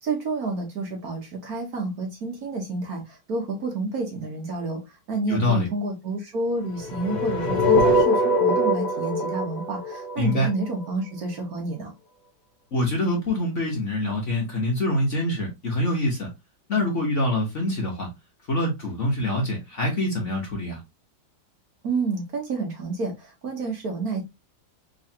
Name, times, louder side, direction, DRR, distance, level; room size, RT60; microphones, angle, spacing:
voice 1, 0.0-4.8 5.1-11.9 21.8-24.2, right 3 dB, 55° right, 1.4 m, -29 dB
voice 2, 5.3-5.7 10.2-10.5 12.7-16.3 16.7-18.1 18.5-20.8, left 1 dB, 45° left, 1.2 m, -25 dB
sound 1, 6.8-10.9, left 1 dB, 65° left, 0.4 m, -22 dB
3.9 x 3.1 x 2.7 m
omnidirectional pair, 2.1 m